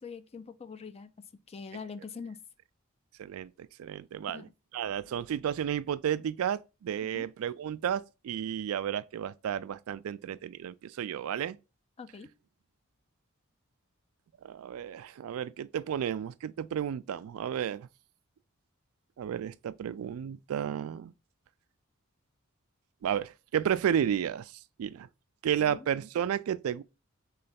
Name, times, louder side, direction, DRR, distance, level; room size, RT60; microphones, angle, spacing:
voice 1, 0.0-2.4 4.3-4.5 5.0-5.1 7.1-7.3 12.0-12.3 25.6-25.9, left 5 dB, 30° left, 0.4 m, -44 dB
voice 2, 3.2-4.5 4.7-11.6 14.4-17.9 19.2-21.1 23.0-24.5 24.8-25.1 25.4-26.8, right 9 dB, 75° right, 0.3 m, -32 dB
3.8 x 3.3 x 4.1 m
head